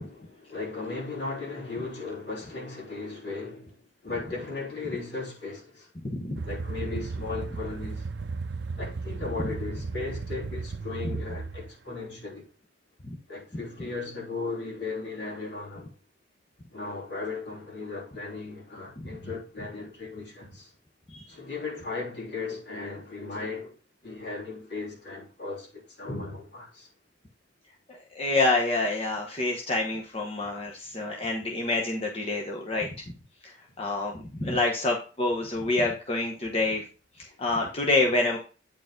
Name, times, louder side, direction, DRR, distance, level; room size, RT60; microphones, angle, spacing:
voice 1, 0.0-3.8 4.0-5.9 6.4-8.1 8.8-12.5 13.3-15.9 16.7-20.7 21.3-23.7 24.0-26.9, left 3 dB, 60° left, 3.4 m, -36 dB
sound 1, 6.3-11.7, right 4 dB, 60° right, 0.5 m, -35 dB
voice 2, 27.9-32.9 33.4-36.8 37.2-38.4, left 2 dB, 30° left, 1.0 m, -27 dB
9.1 x 4.8 x 3.7 m
head